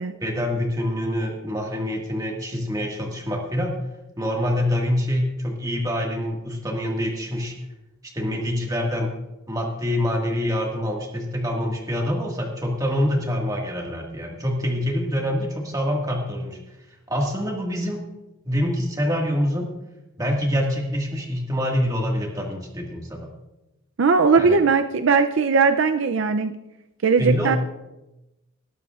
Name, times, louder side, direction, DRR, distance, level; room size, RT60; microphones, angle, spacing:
voice 1, 0.2-3.8 4.2-7.5 8.1-9.1 9.5-16.6 17.1-18.0 18.5-19.7 20.2-23.3 24.4-24.6 27.2-27.6, equal, 15° right, 0 dB, 1.8 m, -25 dB
voice 2, 24.0-26.5 27.0-27.6, right 5 dB, 65° right, 8 dB, 0.5 m, -19 dB
19.0 x 12.0 x 2.4 m, 0.97 s
head